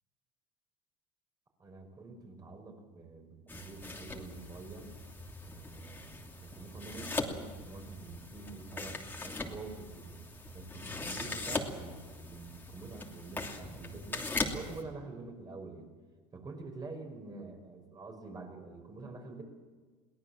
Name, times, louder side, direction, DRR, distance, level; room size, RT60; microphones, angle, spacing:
voice 1, 1.6-4.9 5.4-10.2 10.5-14.3 14.5-15.9 16.3-19.4, right 3 dB, 30° right, 4 dB, 5.7 m, -47 dB
sound 1, 3.5-14.8, left 2 dB, 15° left, 2.9 m, -40 dB
22.5 x 18.0 x 7.4 m, 1.4 s
supercardioid pair, 105°, 14 cm